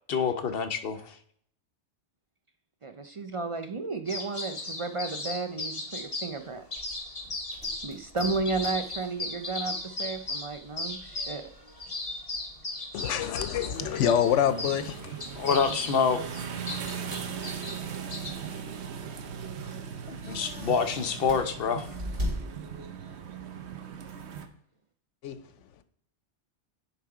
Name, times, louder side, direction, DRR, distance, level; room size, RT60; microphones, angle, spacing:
voice 1, 0.1-1.1 15.4-16.2 20.1-21.9, left 6 dB, 55° left, 0.9 m, -27 dB
voice 2, 2.8-6.6 7.8-11.5, right 4 dB, 45° right, 0.4 m, -33 dB
sound 1, 4.1-6.4 6.7-7.9 8.2-14.8 15.2-18.3, left 2 dB, 30° left, 1.2 m, -36 dB
sound 2, 6.8-23.1, equal, 90° right, 3.4 m, -43 dB
voice 3, 12.9-15.5 25.2-25.8, left 9 dB, 85° left, 1.0 m, -27 dB
sound 3, 13.7-24.5, right 7 dB, 65° right, 1.0 m, -39 dB
9.8 x 3.5 x 4.8 m
omnidirectional pair, 1.2 m